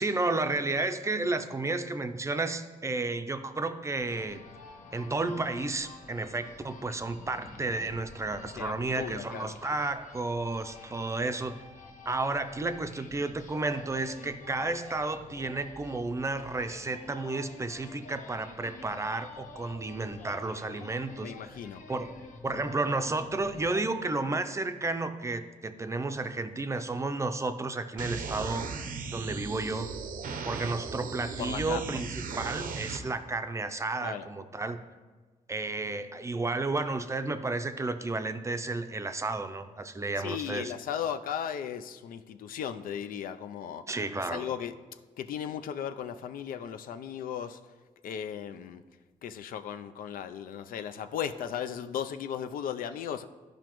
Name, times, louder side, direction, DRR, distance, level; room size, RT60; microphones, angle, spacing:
voice 1, 0.0-4.4 4.9-11.5 12.1-21.5 21.9-22.1 22.4-28.7 29.1-29.9 30.4-34.8 35.5-40.7 43.9-44.5, right 3 dB, 20° right, 0.5 m, -32 dB
sound 1, 4.0-23.9, left 3 dB, 65° left, 0.8 m, -49 dB
voice 2, 8.6-9.5 21.2-21.8 31.4-32.0 34.0-34.3 40.2-43.9 44.2-44.7 45.2-47.6 48.0-48.8 49.2-53.2, left 8 dB, 85° left, 0.4 m, -36 dB
sound 2, 28.0-33.0, right 5 dB, 80° right, 0.7 m, -37 dB
12.5 x 5.0 x 3.0 m
cardioid pair, 115°, 14 cm